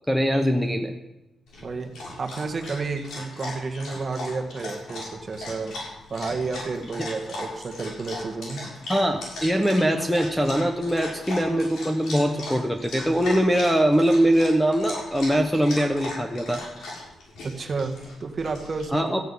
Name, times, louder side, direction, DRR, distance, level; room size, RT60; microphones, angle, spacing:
voice 1, 0.1-0.9 8.9-16.6 18.9-19.2, equal, ahead, 5 dB, 0.9 m, -22 dB
Dog, 1.5-18.8, left 2 dB, 90° left, 6.7 m, -38 dB
voice 2, 1.6-1.9 2.2-5.8 6.1-8.7 17.4-19.1, right 4 dB, 30° right, 4 dB, 1.8 m, -31 dB
15.0 x 9.9 x 8.5 m, 0.94 s
wide cardioid pair, 160°, 0 cm